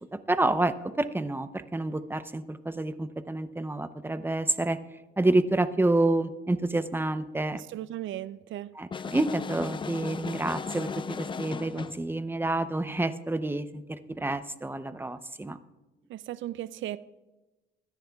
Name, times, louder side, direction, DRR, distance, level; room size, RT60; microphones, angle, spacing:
voice 1, 0.3-4.8 5.2-7.6 8.8-15.6, right 2 dB, 10° right, 12 dB, 0.7 m, -28 dB
voice 2, 7.5-8.8 16.1-17.0, right 13 dB, 75° right, 16 dB, 0.5 m, -36 dB
sound 1, 8.9-12.1, left 5 dB, 25° left, 0.3 m, -36 dB
22.0 x 10.5 x 2.3 m, 1.1 s
cardioid pair, 90°, 20 cm